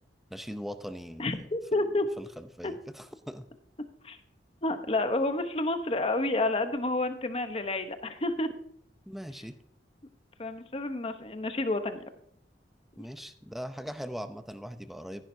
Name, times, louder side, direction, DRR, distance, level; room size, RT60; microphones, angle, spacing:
voice 1, 0.3-1.6 1.8-3.5 9.1-9.6 13.0-15.2, equal, ahead, 9 dB, 0.6 m, -41 dB
voice 2, 1.2-2.0 2.6-2.7 4.0-4.2 4.6-8.5 10.4-12.0, left 2 dB, 30° left, 9 dB, 0.9 m, -29 dB
15.0 x 10.5 x 2.7 m, 0.68 s
head